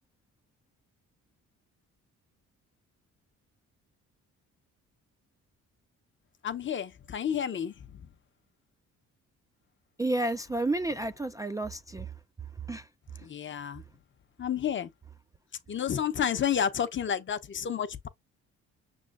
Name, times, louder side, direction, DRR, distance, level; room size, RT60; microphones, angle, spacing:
voice 1, 6.4-8.1 13.2-13.8 14.4-14.9 15.7-18.1, left 8 dB, 40° left, 0.7 m, -31 dB
voice 2, 10.0-12.1 12.7-12.9 13.2-13.3, right 2 dB, 10° right, 0.3 m, -31 dB
6.1 x 3.2 x 2.4 m
cardioid pair, 90°, 30 cm